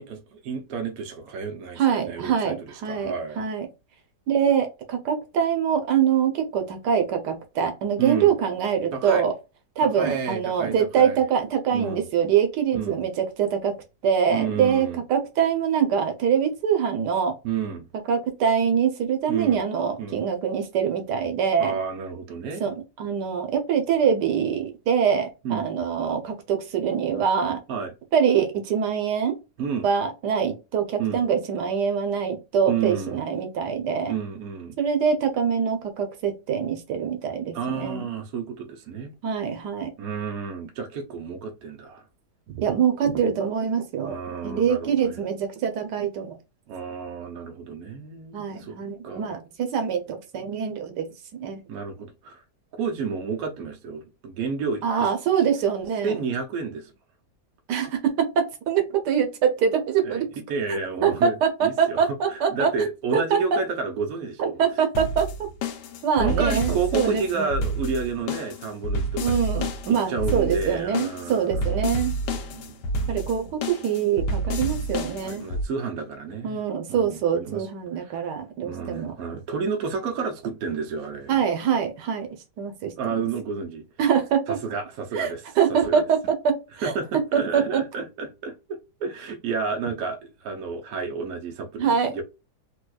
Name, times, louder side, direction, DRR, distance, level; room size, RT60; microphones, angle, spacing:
voice 1, 0.0-3.4 8.0-8.3 8.9-9.2 9.8-11.2 11.7-12.0 12.7-13.0 14.3-15.0 17.4-17.9 19.3-19.6 20.0-20.2 21.6-22.7 25.4-25.7 27.7-27.9 29.6-29.9 31.0-31.2 32.7-33.2 34.1-34.8 37.5-39.1 40.0-42.0 44.0-45.2 46.7-48.8 49.0-49.4 51.7-52.4 52.8-55.1 56.0-56.9 60.0-60.2 60.5-64.6 66.2-69.3 69.9-71.6 72.3-72.8 75.2-76.6 76.9-77.7 78.0-78.3 78.6-81.4 83.0-83.8 84.5-85.4 85.7-86.0 86.8-92.2, right 5 dB, 65° right, 1.1 m, -31 dB
voice 2, 1.8-3.7 4.3-9.3 9.8-13.7 14.0-17.3 18.1-21.8 22.6-27.6 28.1-29.3 29.8-34.1 34.8-38.1 39.2-39.9 42.5-44.2 44.4-46.4 48.3-51.0 51.3-51.6 54.8-56.2 57.7-60.2 61.0-62.7 63.1-63.4 64.4-65.3 66.0-67.5 69.2-72.1 73.1-75.5 76.4-79.1 81.3-82.3 82.6-83.1 84.0-84.6 85.1-85.3 85.6-86.5 86.8-86.9 87.3-87.8 91.8-92.1, right 7 dB, 85° right, 1.4 m, -24 dB
sound 1, 64.9-75.6, right 1 dB, 90° left, 1.3 m, -29 dB
4.4 x 2.3 x 2.3 m
omnidirectional pair, 1.8 m